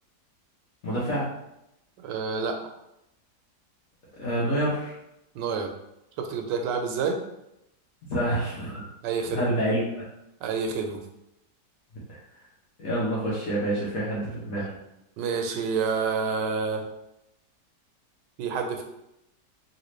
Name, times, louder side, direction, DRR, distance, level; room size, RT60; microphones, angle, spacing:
voice 1, 0.8-1.3 4.2-4.9 8.1-8.8 9.3-9.8 12.8-14.7, right 1 dB, 60° left, -8 dB, 1.2 m, -27 dB
voice 2, 2.0-2.6 5.3-5.7 6.2-7.2 9.0-9.4 10.4-11.0 15.2-16.8 18.4-18.8, right 5 dB, 90° right, 4 dB, 1.2 m, -28 dB
3.3 x 2.7 x 3.1 m, 0.84 s
omnidirectional pair, 1.8 m